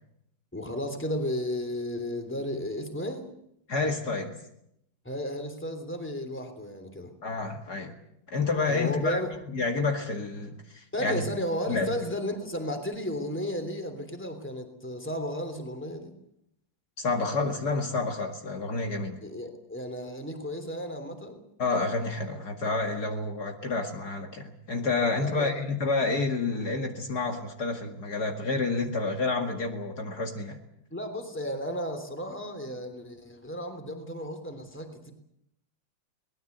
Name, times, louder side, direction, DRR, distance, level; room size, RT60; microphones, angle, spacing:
voice 1, 0.5-3.2 5.0-7.1 8.7-9.3 10.9-16.2 19.2-21.4 25.0-25.6 30.9-35.1, equal, 5° left, 7 dB, 3.0 m, -34 dB
voice 2, 3.7-4.4 7.2-8.0 8.3-9.2 9.5-11.2 11.7-11.9 17.0-19.2 21.6-30.6, left 3 dB, 55° left, 4 dB, 2.6 m, -29 dB
23.5 x 19.5 x 8.0 m, 0.76 s
omnidirectional pair, 2.1 m